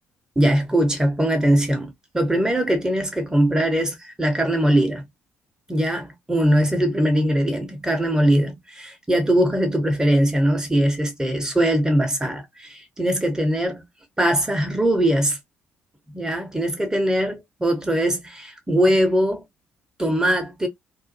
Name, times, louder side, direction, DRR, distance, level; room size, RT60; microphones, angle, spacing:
voice 1, 0.4-5.0 5.7-13.8 14.2-15.4 16.1-19.4 20.0-20.7, right 1 dB, 10° right, 0.8 m, -21 dB
2.4 x 2.2 x 2.7 m
figure-of-eight pair, 45°, 7 cm